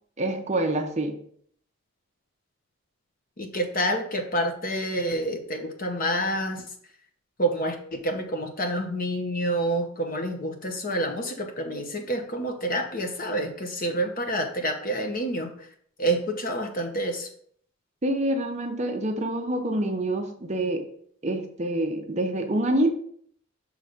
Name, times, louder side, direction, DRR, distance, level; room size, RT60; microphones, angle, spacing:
voice 1, 0.2-1.2 18.0-20.9 21.2-22.9, right 1 dB, 30° right, 4 dB, 0.6 m, -26 dB
voice 2, 3.4-6.6 7.4-15.7 16.0-17.3, right 1 dB, 40° left, 4 dB, 0.9 m, -28 dB
6.6 x 3.3 x 5.0 m, 0.62 s
head